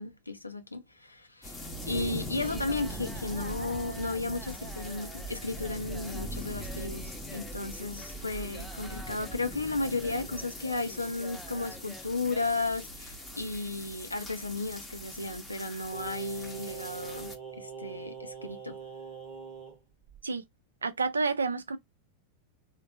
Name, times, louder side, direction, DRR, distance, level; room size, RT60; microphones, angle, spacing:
voice 1, 0.0-17.3 17.6-18.8, left 3 dB, 85° left, 0.6 m, -34 dB
sound 1, 1.4-17.4, equal, 10° left, 0.9 m, -41 dB
sound 2, 2.4-12.6, right 2 dB, 10° right, 0.5 m, -49 dB
Singing, 15.9-19.8 20.1-20.2, right 6 dB, 35° right, 0.9 m, -43 dB
voice 2, 20.8-21.8, right 4 dB, 75° right, 0.4 m, -29 dB
3.5 x 2.2 x 2.6 m
figure-of-eight pair, 90°, 0 cm